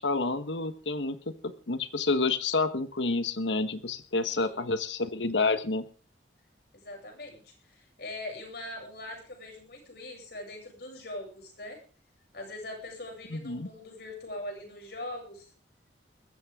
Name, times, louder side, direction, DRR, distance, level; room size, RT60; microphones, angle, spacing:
voice 1, 0.0-5.8 13.3-13.7, left 3 dB, 80° left, 11 dB, 1.4 m, -29 dB
voice 2, 4.2-4.7 6.7-11.8 12.3-15.5, left 1 dB, 60° left, 2 dB, 7.9 m, -42 dB
20.5 x 14.5 x 3.8 m, 0.37 s
head